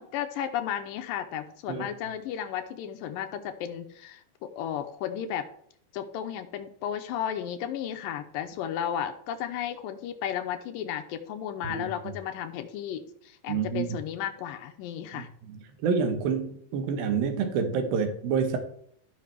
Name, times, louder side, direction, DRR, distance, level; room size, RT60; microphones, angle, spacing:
voice 1, 0.0-5.5 5.9-15.3, left 9 dB, 80° left, 6 dB, 2.3 m, -34 dB
voice 2, 13.5-13.9 15.1-15.2 15.8-18.6, right 6 dB, 80° right, 5 dB, 2.9 m, -27 dB
14.0 x 5.8 x 3.4 m, 0.65 s
omnidirectional pair, 4.2 m